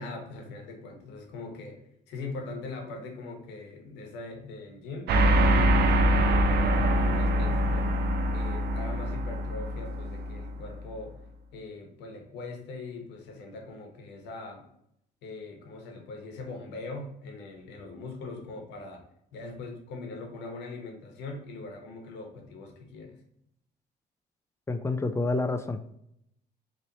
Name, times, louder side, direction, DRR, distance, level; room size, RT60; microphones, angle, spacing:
voice 1, 0.0-5.1 5.5-7.9 8.3-11.1 11.5-14.7 15.2-19.0 19.3-23.2, left 3 dB, 90° left, 2 dB, 1.1 m, -41 dB
sound 1, 5.1-10.9, right 1 dB, 70° right, 0.5 m, -24 dB
voice 2, 24.7-26.0, left 3 dB, 15° left, 8 dB, 0.4 m, -29 dB
4.1 x 3.1 x 3.0 m, 0.74 s
cardioid pair, 100°, 17 cm